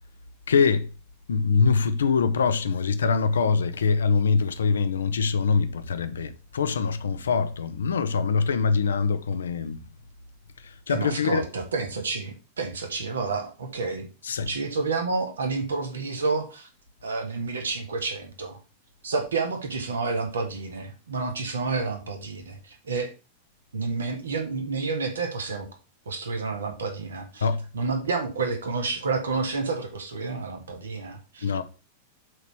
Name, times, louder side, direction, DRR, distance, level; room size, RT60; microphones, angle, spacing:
voice 1, 0.5-0.9 1.3-9.8 10.9-11.4 14.2-14.5 27.4-27.6 31.4-31.6, left 5 dB, 75° left, 0.8 m, -23 dB
voice 2, 10.9-14.1 14.5-16.7 17.0-18.6 19.0-23.1 23.7-25.7 26.0-27.5 27.7-31.5, right 4 dB, 75° right, 1.8 m, -29 dB
7.7 x 4.0 x 6.1 m
figure-of-eight pair, 95°, 0 cm